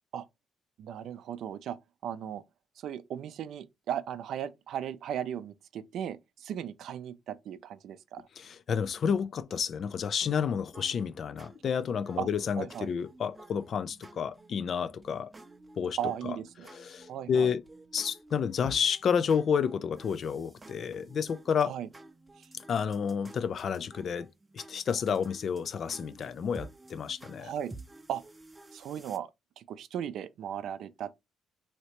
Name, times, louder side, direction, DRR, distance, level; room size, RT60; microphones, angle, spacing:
voice 1, 0.8-2.4 2.8-8.3 12.2-12.3 12.6-12.9 16.0-16.7 17.1-17.5 21.6-21.9 22.4-22.5 27.4-27.7 28.1-28.2 28.7-29.3 29.6-31.1, right 9 dB, 75° right, 0.4 m, -37 dB
voice 2, 8.4-15.3 15.8-16.0 16.2-16.4 16.7-17.6 17.9-21.7 22.7-24.3 24.5-27.5, left 7 dB, 55° left, 0.3 m, -30 dB
sound 1, 10.7-29.2, right 2 dB, 20° right, 0.5 m, -52 dB
3.2 x 2.8 x 2.9 m
cardioid pair, 90°, 0 cm